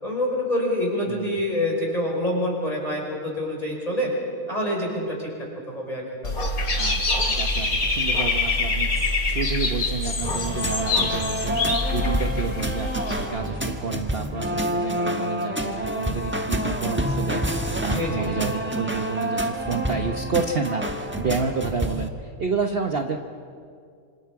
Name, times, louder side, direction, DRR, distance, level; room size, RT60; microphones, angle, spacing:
voice 1, 0.0-4.1 4.5-5.3 5.7-6.4 17.9-18.3, left 1 dB, 25° left, -2 dB, 5.3 m, -26 dB
voice 2, 1.1-1.5 6.8-23.2, right 5 dB, 45° right, 4 dB, 1.1 m, -30 dB
Dog / Bird, 6.2-13.3, left 3 dB, 70° left, 2.6 m, -25 dB
sound 1, 10.2-22.1, equal, 10° right, 1.0 m, -28 dB
26.5 x 26.0 x 4.8 m, 2.2 s
omnidirectional pair, 1.6 m